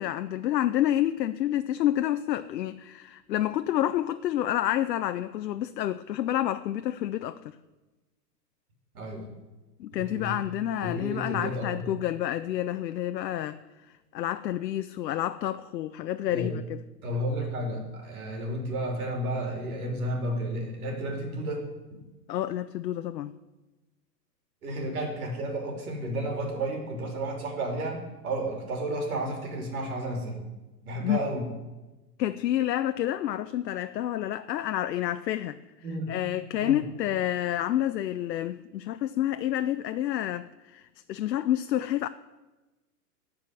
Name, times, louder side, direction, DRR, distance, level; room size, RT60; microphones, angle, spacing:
voice 1, 0.0-7.4 9.8-13.6 14.1-16.8 22.3-23.3 31.0-31.3 32.2-35.6 36.1-42.1, left 12 dB, 85° left, 0.7 m, -29 dB
voice 2, 8.9-9.3 10.0-10.4 10.8-11.9 16.3-16.6 17.0-22.0 24.6-30.4 30.8-31.5 35.8-36.1 36.5-36.8, right 1 dB, 60° right, 3.2 m, -32 dB
14.5 x 5.1 x 8.9 m
hypercardioid pair, 170°, 49 cm